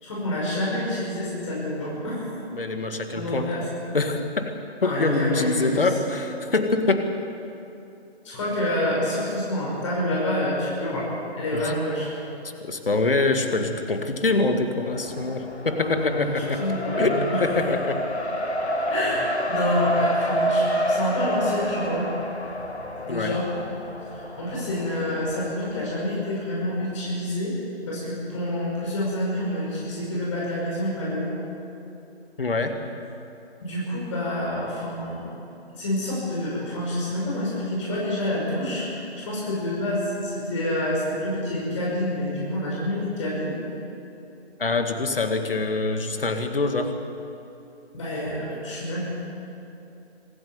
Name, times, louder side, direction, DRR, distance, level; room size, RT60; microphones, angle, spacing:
voice 1, 0.0-2.3 3.1-3.6 4.8-5.9 8.2-11.1 11.3-12.1 15.8-17.5 18.9-22.1 23.0-23.5 24.1-27.5 27.9-31.3 33.6-35.2 35.7-43.6 47.9-49.0, left 1 dB, 30° left, -5 dB, 5.6 m, -28 dB
voice 2, 2.5-3.5 3.9-7.1 11.5-11.7 12.6-16.6 17.0-18.0 23.1-23.4 32.4-32.8 44.6-46.9, left 3 dB, 60° left, 6 dB, 2.1 m, -25 dB
Race car auto racing, 14.9-25.9, equal, 85° left, 2.0 m, -28 dB
25.5 x 11.0 x 9.7 m, 2.8 s
figure-of-eight pair, 150°, 32 cm